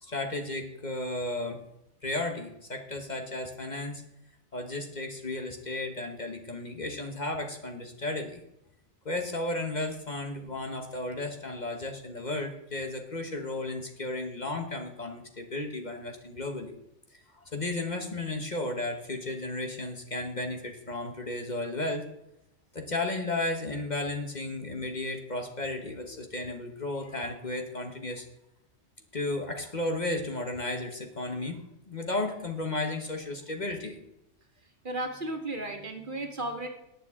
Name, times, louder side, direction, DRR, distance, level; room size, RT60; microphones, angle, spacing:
voice 1, 0.0-1.7 2.0-4.0 4.5-8.4 9.0-16.7 17.1-22.1 22.7-28.3 29.1-34.0, left 2 dB, 40° left, 4 dB, 1.3 m, -34 dB
voice 2, 34.8-36.7, right 2 dB, 45° right, 3 dB, 1.8 m, -34 dB
19.0 x 7.1 x 3.6 m, 0.85 s
omnidirectional pair, 1.2 m